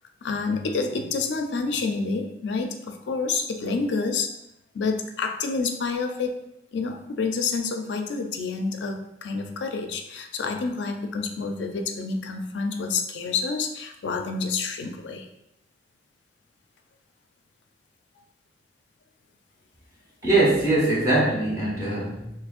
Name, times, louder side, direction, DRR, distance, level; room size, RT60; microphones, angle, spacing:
voice 1, 0.2-4.3 4.7-6.3 6.7-15.3, left 4 dB, 80° left, 5 dB, 0.4 m, -28 dB
voice 2, 20.2-22.3, right 2 dB, 20° right, -8 dB, 1.3 m, -22 dB
6.0 x 2.1 x 2.4 m, 0.82 s
head